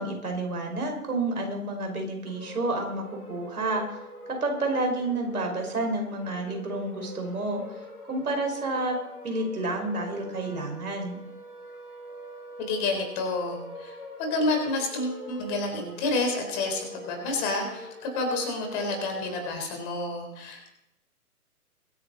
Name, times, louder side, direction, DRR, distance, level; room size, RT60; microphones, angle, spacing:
voice 1, 0.0-3.8 4.3-7.6 8.1-9.0 9.2-11.2, right 2 dB, 75° right, 3 dB, 5.0 m, -30 dB
sound 1, 2.2-19.5, equal, 80° left, 7.3 m, -44 dB
voice 2, 12.6-20.7, left 2 dB, 30° left, 4 dB, 3.9 m, -29 dB
23.0 x 10.0 x 4.0 m, 0.85 s
figure-of-eight pair, 130°, 45 cm